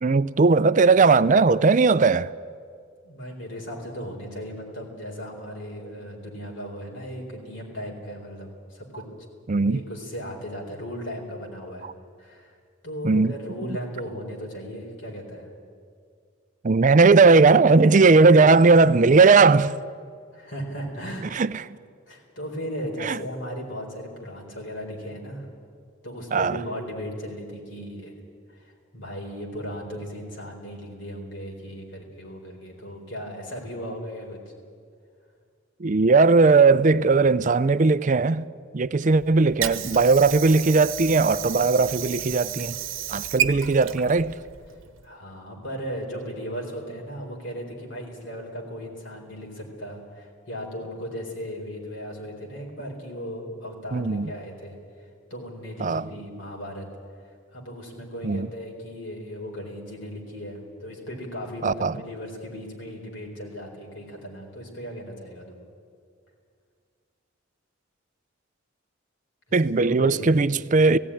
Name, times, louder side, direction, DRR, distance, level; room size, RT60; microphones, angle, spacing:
voice 1, 0.0-2.3 9.5-9.8 11.8-11.9 13.0-13.3 16.6-19.8 21.3-21.7 23.0-23.2 26.3-26.6 35.8-38.5 38.7-42.8 43.1-44.3 53.9-54.3 55.8-56.1 58.2-58.5 61.6-62.0 69.5-71.0, right 4 dB, 40° right, 0.5 m, -18 dB
voice 2, 3.0-9.0 9.7-11.9 12.2-12.5 12.8-15.5 20.3-21.4 22.1-25.5 26.0-28.1 28.5-34.4 45.0-54.8 55.3-56.9 57.5-65.6 69.5-70.3, equal, 65° left, 4.2 m, -36 dB
Water / Sink (filling or washing), 39.1-45.1, right 10 dB, 80° right, 1.0 m, -32 dB
17.5 x 16.0 x 10.0 m
head